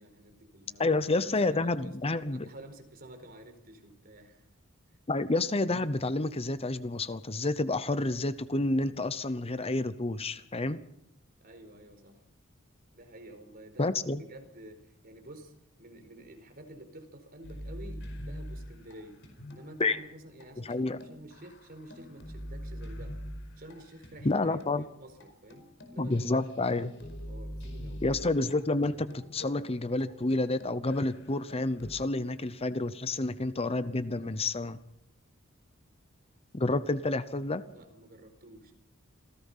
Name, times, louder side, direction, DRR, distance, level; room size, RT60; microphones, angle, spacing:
voice 1, 0.0-0.8 1.2-1.9 2.3-4.5 11.4-12.2 12.9-15.5 15.8-19.2 19.5-23.2 23.6-28.0 37.6-38.7, right 1 dB, 45° right, 6 dB, 4.4 m, -50 dB
voice 2, 0.8-2.5 5.1-10.8 13.8-14.2 19.8-20.0 20.6-21.0 24.2-24.8 26.0-26.9 28.0-34.8 36.5-37.6, left 2 dB, 30° left, 13 dB, 0.8 m, -29 dB
sound 1, 17.4-20.0 20.4-20.5 20.7-24.8 25.2-25.3 25.5-31.9, equal, 60° left, 4.9 m, -44 dB
27.5 x 17.5 x 5.6 m, 0.81 s
head